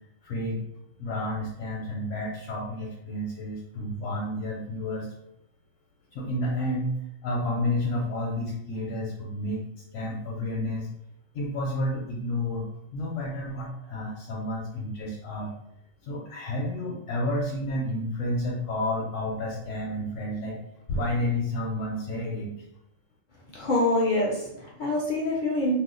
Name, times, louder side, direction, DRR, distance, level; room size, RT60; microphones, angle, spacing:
voice 1, 0.2-0.6 1.0-5.1 6.1-6.9 7.2-9.6 9.9-10.9 11.3-12.7 12.9-15.5 16.0-20.6 20.9-22.5, left 1 dB, 85° left, -3 dB, 1.0 m, -30 dB
voice 2, 23.5-25.8, left 1 dB, 60° left, -3 dB, 0.5 m, -25 dB
2.6 x 2.1 x 3.6 m, 0.81 s
omnidirectional pair, 1.3 m